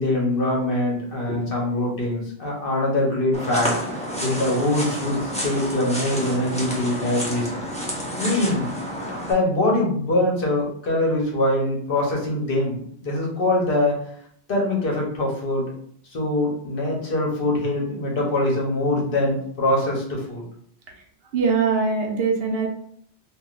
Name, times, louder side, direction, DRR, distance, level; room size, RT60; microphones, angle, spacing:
voice 1, 0.0-3.8 4.2-7.5 8.2-14.0 14.5-15.7 16.1-20.4, left 1 dB, 60° left, -2 dB, 1.0 m, -23 dB
sound 1, 3.3-9.3, equal, 10° left, 0.5 m, -30 dB
voice 2, 21.3-22.7, right 5 dB, 70° right, 1 dB, 0.8 m, -22 dB
3.4 x 2.5 x 2.4 m, 0.62 s
omnidirectional pair, 1.1 m